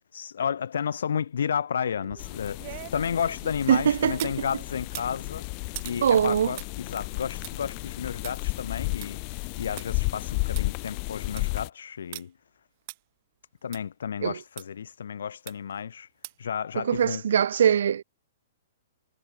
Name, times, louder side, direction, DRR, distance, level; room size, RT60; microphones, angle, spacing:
voice 1, 0.1-5.5 5.8-12.3 13.6-16.1 16.4-17.2, left 7 dB, 80° left, 0.6 m, -32 dB
sound 1, 1.9-4.4 4.8-9.9 10.2-10.3 10.6-10.7 11.1-11.5 12.1-12.2 12.9-13.0 13.7-13.8 14.6-14.7 15.5-15.8 16.2-16.5 16.9-17.0, right 22 dB, 35° right, 4.1 m, -43 dB
sound 2, 2.2-11.7, left 40 dB or more, 30° left, 1.4 m, -33 dB
voice 2, 3.7-4.3 6.0-6.5 14.2-14.4 16.8-18.0, right 8 dB, 70° right, 0.4 m, -22 dB
hypercardioid pair, 165°, 0 cm